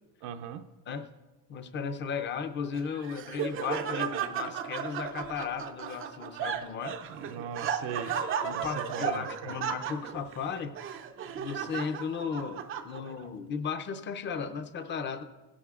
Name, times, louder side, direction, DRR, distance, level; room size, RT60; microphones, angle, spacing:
voice 1, 0.2-0.6 7.1-8.2 8.5-9.6, right 8 dB, 60° right, 6 dB, 0.7 m, -39 dB
voice 2, 1.5-7.0 8.4-10.8 11.3-15.2, left 6 dB, 25° left, 9 dB, 0.6 m, -35 dB
Laughter, 2.7-13.3, right 8 dB, 25° right, 0.5 m, -35 dB
17.0 x 12.5 x 2.4 m, 1.2 s
supercardioid pair, 130°, 48 cm